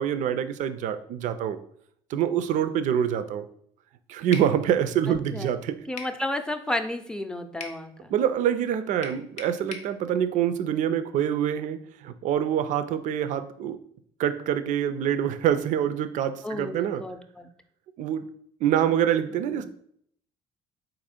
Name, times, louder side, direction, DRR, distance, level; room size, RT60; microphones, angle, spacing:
voice 1, 0.0-1.6 2.1-3.4 4.1-5.8 8.1-13.8 14.2-17.0 18.0-18.2 18.6-19.6, right 9 dB, 65° right, 11 dB, 0.4 m, -25 dB
sound 1, 4.3-4.5 6.0-6.2 7.6-7.8 9.0-9.9, left 4 dB, 55° left, 0.7 m, -38 dB
voice 2, 5.1-5.5 5.9-8.1 16.4-17.5 19.5-19.6, left 1 dB, 5° left, 7 dB, 0.5 m, -32 dB
4.1 x 2.6 x 4.2 m, 0.66 s
hypercardioid pair, 60°, 14 cm